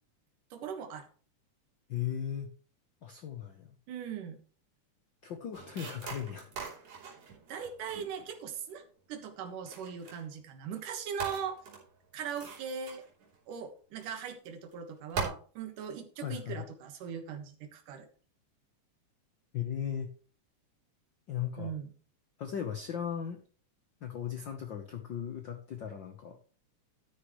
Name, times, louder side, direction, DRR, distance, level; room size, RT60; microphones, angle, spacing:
voice 1, 0.5-1.1 3.9-4.4 7.5-8.8 9.1-11.6 12.1-13.0 13.5-18.1 21.6-21.9, right 7 dB, 85° right, 6 dB, 3.0 m, -40 dB
voice 2, 1.9-2.5 3.0-3.7 5.2-6.5 16.2-16.7 19.5-20.1 21.3-21.7 22.4-23.4 24.0-26.4, left 9 dB, 85° left, 6 dB, 1.0 m, -37 dB
sound 1, 5.5-8.8 9.4-10.2 10.7-10.9 11.2-13.5 14.0-14.1 14.5-14.7 15.1-15.3, right 5 dB, 65° right, 4.9 m, -42 dB
12.5 x 9.6 x 3.1 m, 0.40 s
omnidirectional pair, 3.7 m